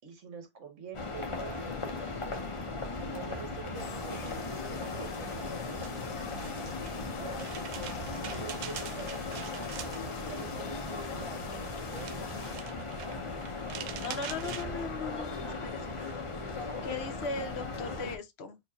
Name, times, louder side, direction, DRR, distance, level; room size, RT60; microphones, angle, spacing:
voice 1, 0.0-2.3 3.1-6.0 7.0-7.6 8.1-13.3, right 7 dB, 60° right, 1.4 m, -47 dB
sound 1, 0.9-18.2, left 3 dB, 30° left, 0.6 m, -37 dB
sound 2, 3.7-12.6, left 6 dB, 70° left, 1.2 m, -46 dB
sound 3, 5.2-14.7, right 9 dB, 80° right, 1.1 m, -45 dB
voice 2, 14.0-15.9 16.8-18.6, left 4 dB, 55° left, 0.9 m, -38 dB
4.4 x 2.7 x 2.9 m
omnidirectional pair, 1.5 m